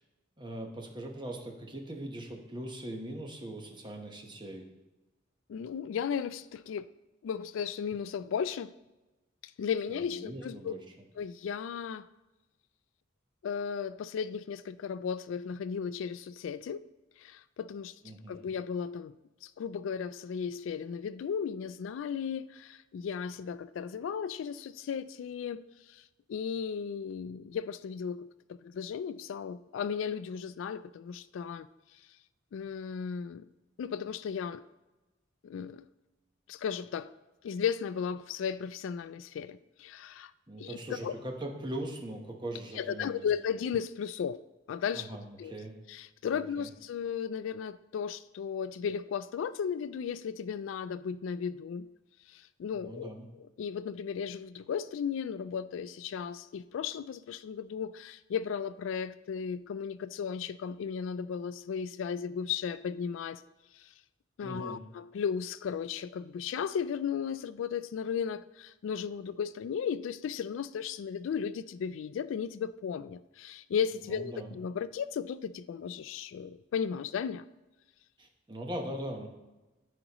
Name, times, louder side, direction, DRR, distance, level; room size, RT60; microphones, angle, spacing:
voice 1, 0.4-4.7 9.9-10.8 18.0-18.5 40.5-43.3 44.9-45.8 46.3-46.7 52.7-53.3 64.4-64.8 74.0-74.6 78.2-79.3, right 1 dB, 25° right, 2 dB, 1.1 m, -41 dB
voice 2, 5.5-6.9 7.2-8.7 9.6-10.7 11.2-12.1 13.4-16.8 17.2-17.9 18.3-25.6 25.9-26.0 26.3-31.7 32.5-33.5 33.8-34.6 35.4-35.9 36.5-37.1 37.4-40.3 40.6-40.8 41.0-41.1 42.8-44.4 44.7-45.1 45.4-45.5 45.9-51.9 52.3-63.4 63.7-63.9 64.4-77.4, left 7 dB, 75° left, 14 dB, 0.3 m, -35 dB
13.0 x 5.0 x 3.0 m, 1.1 s
head